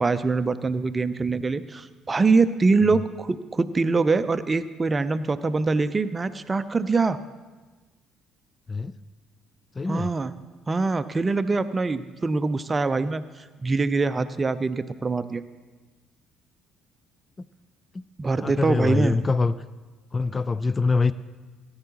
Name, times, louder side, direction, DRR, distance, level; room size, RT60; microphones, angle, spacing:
voice 1, 0.0-7.2 9.9-10.3 10.7-15.4 18.2-19.2, right 3 dB, 25° right, 12 dB, 0.5 m, -24 dB
voice 2, 9.8-10.1 18.4-19.5 20.1-21.1, left 4 dB, 25° left, 17 dB, 0.4 m, -24 dB
17.5 x 9.5 x 2.9 m, 1.3 s
figure-of-eight pair, 50°, 0 cm